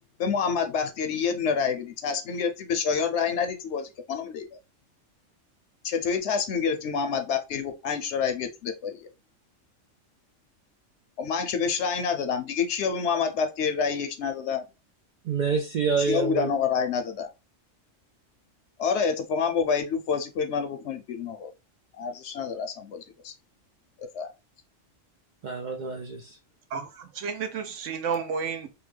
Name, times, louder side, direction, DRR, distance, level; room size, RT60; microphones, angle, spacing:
voice 1, 0.2-4.4 5.8-9.1 11.2-14.6 16.0-17.3 18.8-21.5 22.0-23.3 24.0-24.3, left 6 dB, 65° left, 0.8 m, -28 dB
voice 2, 15.2-16.5 25.4-26.4, right 5 dB, 90° right, 0.4 m, -27 dB
voice 3, 26.7-28.7, right 6 dB, 70° right, 1.0 m, -31 dB
2.9 x 2.2 x 3.1 m
omnidirectional pair, 1.3 m